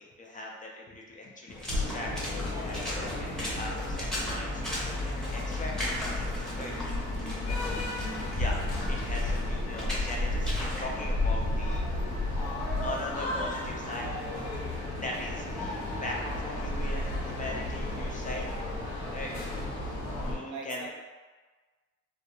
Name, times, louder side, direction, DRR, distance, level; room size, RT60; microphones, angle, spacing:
voice 1, 0.0-6.7 7.1-7.8 8.3-11.8 12.1-12.3 12.8-14.1 15.0-18.5 19.1-19.4 19.8-19.9 20.2-20.9, left 2 dB, 25° left, -1 dB, 0.3 m, -40 dB
Water / Splash splatter, 1.5-10.8, equal, ahead, 0.7 m, -39 dB
sound 1, 1.7-20.3, left 2 dB, 65° left, 0.9 m, -33 dB
sound 2, 2.1-17.6, right 3 dB, 85° left, 0.9 m, -50 dB
voice 2, 20.4-20.9, right 5 dB, 70° right, 1 dB, 0.5 m, -42 dB
2.2 x 2.2 x 2.8 m, 1.4 s
cardioid pair, 90°, 30 cm